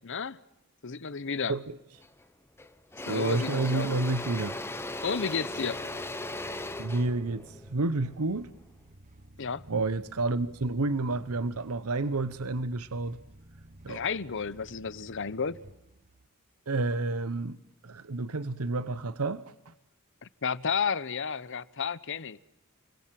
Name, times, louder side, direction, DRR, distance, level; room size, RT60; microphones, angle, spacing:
voice 1, 0.0-0.4 0.8-1.5 3.1-4.0 5.0-5.8 9.4-9.6 13.9-15.6 20.2-22.4, left 5 dB, 60° left, 1.0 m, -32 dB
Engine / Drill, 2.0-2.2 2.6-8.7, left 2 dB, 10° left, 1.2 m, -38 dB
voice 2, 3.1-4.6 6.8-8.5 9.7-13.2 13.8-14.0 16.7-17.6 17.8-19.7, right 3 dB, 90° right, 0.9 m, -30 dB
sound 1, 3.8-16.3, right 1 dB, 35° right, 1.1 m, -53 dB
29.5 x 22.0 x 7.7 m
head